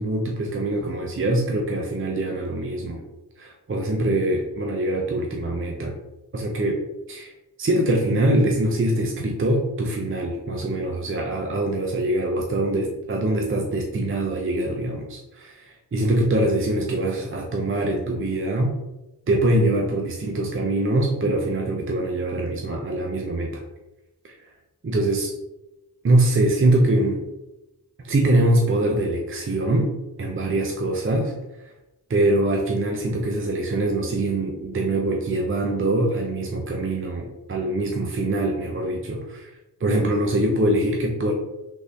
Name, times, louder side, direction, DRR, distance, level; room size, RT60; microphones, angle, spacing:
voice 1, 0.0-3.0 3.4-5.9 6.3-6.8 7.1-7.3 7.6-18.8 19.3-23.6 24.2-24.5 24.8-25.3 26.0-27.2 28.0-29.9 30.2-31.3 32.1-41.3, right 1 dB, 30° right, 1 dB, 0.5 m, -23 dB
3.5 x 2.6 x 3.1 m, 0.96 s
cardioid pair, 50°, 41 cm